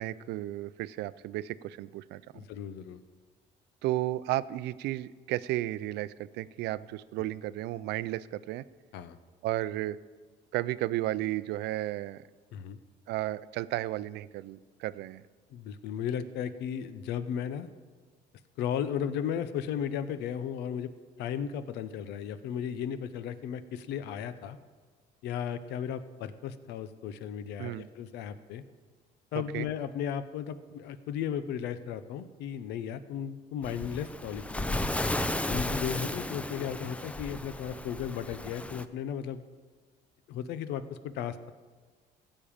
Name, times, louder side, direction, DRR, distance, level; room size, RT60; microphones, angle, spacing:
voice 1, 0.0-2.2 3.8-8.6 9.4-10.0 10.5-12.2 13.1-15.2 27.6-27.9 29.3-29.7, right 15 dB, 85° right, 17 dB, 0.5 m, -33 dB
voice 2, 2.3-3.0 8.9-9.2 12.5-12.8 15.5-17.7 18.6-20.9 21.2-24.6 25.2-28.6 29.3-34.9 35.5-39.4 40.3-41.5, left 8 dB, 85° left, 13 dB, 0.7 m, -35 dB
Waves surf, 33.6-38.8, left 1 dB, 5° left, 0.5 m, -34 dB
15.0 x 5.4 x 8.7 m, 1.4 s
cardioid pair, 110°, 17 cm